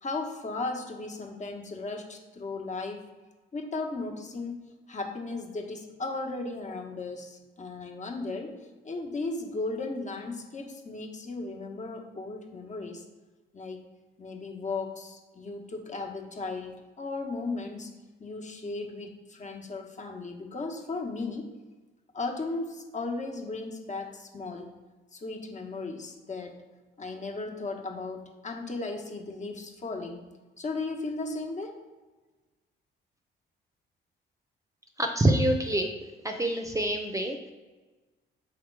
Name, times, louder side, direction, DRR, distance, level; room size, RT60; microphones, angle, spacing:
voice 1, 0.0-3.1 3.5-4.6 4.9-13.0 13.5-13.9 14.2-17.9 18.2-21.5 22.1-24.8 25.1-26.6 27.0-30.2 30.6-31.8, left 3 dB, 35° left, 3 dB, 1.3 m, -36 dB
voice 2, 35.0-35.9 36.2-37.5, right 1 dB, 15° right, 3 dB, 0.7 m, -26 dB
6.4 x 3.5 x 4.7 m, 1.3 s
cardioid pair, 90°, 20 cm